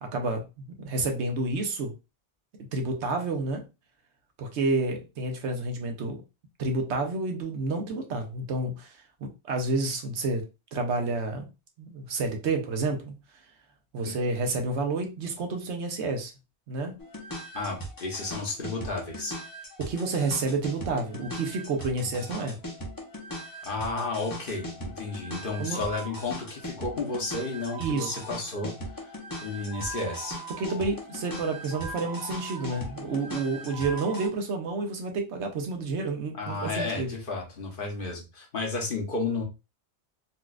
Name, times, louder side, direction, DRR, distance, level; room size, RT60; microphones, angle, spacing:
voice 1, 0.0-1.9 2.7-3.6 4.4-6.2 6.6-10.4 10.7-11.5 11.8-13.2 13.9-16.3 16.7-17.0 19.8-22.6 25.6-25.8 27.8-28.1 30.6-37.1, right 3 dB, 75° right, 1.0 m, -30 dB
sound 1, 17.0-34.3, right 1 dB, 20° left, 0.6 m, -39 dB
voice 2, 17.5-19.3 22.0-22.1 23.6-29.1 29.4-30.4 36.3-39.4, left 3 dB, 50° left, 1.0 m, -32 dB
4.1 x 2.4 x 2.3 m
omnidirectional pair, 1.2 m